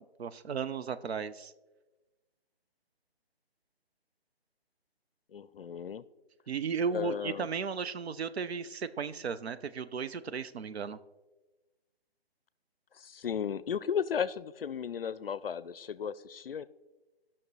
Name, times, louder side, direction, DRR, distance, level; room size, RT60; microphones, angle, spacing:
voice 1, 0.2-1.5 6.5-11.0, right 6 dB, 90° right, 13 dB, 0.6 m, -35 dB
voice 2, 5.3-6.0 6.9-7.5 13.0-16.6, left 7 dB, 65° left, 17 dB, 0.4 m, -35 dB
16.0 x 5.9 x 3.2 m, 1.1 s
hypercardioid pair, 180°, 31 cm